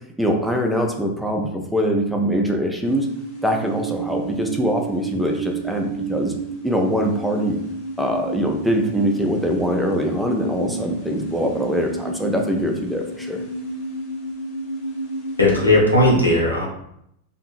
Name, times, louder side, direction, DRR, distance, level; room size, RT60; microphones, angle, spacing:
voice 1, 0.2-3.1 3.4-6.3 6.6-7.6 8.0-13.4, equal, ahead, 1 dB, 0.4 m, -23 dB
sound 1, 2.8-15.8, right 3 dB, 70° left, 1.2 m, -31 dB
voice 2, 15.4-16.7, left 1 dB, 85° left, -3 dB, 0.7 m, -16 dB
2.7 x 2.5 x 2.4 m, 0.75 s
figure-of-eight pair, 90°, 0 cm